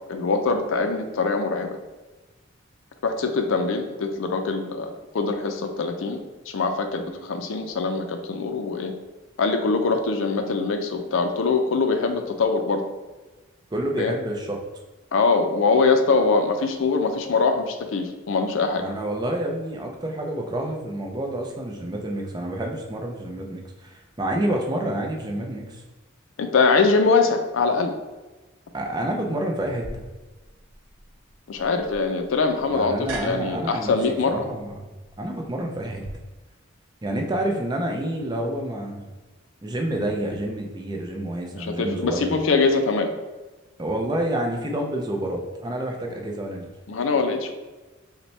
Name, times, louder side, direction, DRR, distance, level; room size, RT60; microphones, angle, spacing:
voice 1, 0.1-1.7 3.0-6.2 6.5-8.9 9.4-12.8 14.0-14.1 15.1-18.8 26.4-27.9 31.5-34.5 41.5-43.1 46.9-47.5, left 4 dB, 70° left, 6 dB, 0.4 m, -23 dB
voice 2, 13.7-14.6 18.8-25.8 28.7-30.1 32.7-34.0 34.2-34.9 35.2-36.0 37.0-39.1 39.6-42.4 43.8-46.7, right 1 dB, 20° right, 1 dB, 0.5 m, -28 dB
sound 1, 29.8-36.1, right 2 dB, 90° right, 0.7 m, -42 dB
5.3 x 2.2 x 3.2 m, 1.2 s
head